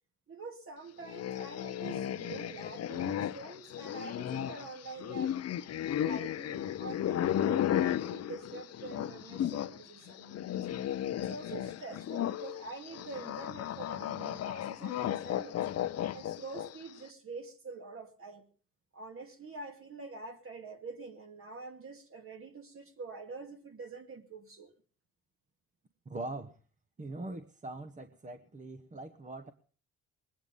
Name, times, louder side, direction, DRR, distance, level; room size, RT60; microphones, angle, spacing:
voice 1, 0.3-5.3 6.0-10.6 11.1-15.7 16.1-18.5 18.9-24.7, right 4 dB, 45° right, 2.4 m, -46 dB
sound 1, 1.0-9.8 10.1-16.9, left 11 dB, 55° left, 0.7 m, -34 dB
voice 2, 26.0-26.6 27.0-29.5, right 2 dB, 25° right, 1.2 m, -42 dB
21.0 x 9.5 x 5.4 m
cardioid pair, 90°, 30 cm